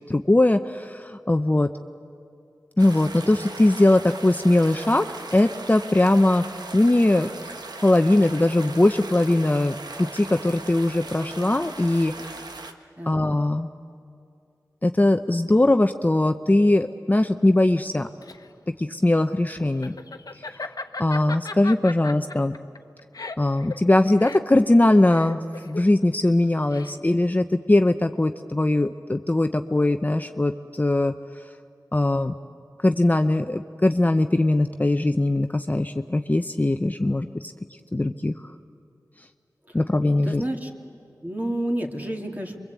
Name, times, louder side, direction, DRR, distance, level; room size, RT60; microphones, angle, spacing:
voice 1, 0.1-1.7 2.8-5.0 5.3-6.4 6.7-7.3 7.8-12.3 13.1-13.7 14.8-18.1 18.8-20.0 20.5-20.7 21.0-22.6 23.4-31.1 31.9-32.3 32.8-37.5 37.9-38.3 39.7-40.4, left 1 dB, 25° left, 7 dB, 0.7 m, -20 dB
sound 1, 2.8-12.7, right 3 dB, 90° right, 1.4 m, -39 dB
voice 2, 13.0-13.3 39.7-39.8 40.2-40.7 41.2-42.6, right 1 dB, 25° right, 2 dB, 2.8 m, -30 dB
Laughter, 17.8-27.2, left 3 dB, 65° left, 1.1 m, -38 dB
27.5 x 23.0 x 8.3 m, 2.5 s
wide cardioid pair, 65°, 7 cm